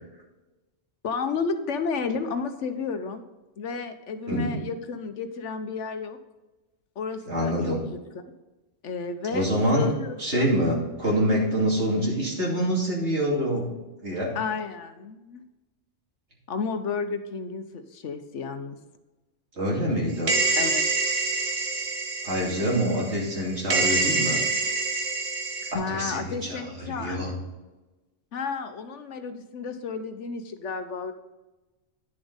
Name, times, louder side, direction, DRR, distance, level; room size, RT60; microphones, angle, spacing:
voice 1, 1.0-3.2 3.6-6.2 7.0-7.8 8.8-10.5 14.3-15.4 16.5-18.8 20.6-20.8 25.7-27.4 28.3-31.1, left 5 dB, 70° left, 9 dB, 1.1 m, -32 dB
voice 2, 7.3-7.8 9.3-9.9 10.2-13.6 14.0-14.4 19.6-20.3 22.2-24.4 25.7-27.3, equal, 60° right, -3 dB, 2.9 m, -26 dB
sound 1, 20.3-23.4 23.7-25.7, right 3 dB, 80° right, 1.7 m, -26 dB
10.5 x 7.0 x 4.0 m, 1.1 s
omnidirectional pair, 1.3 m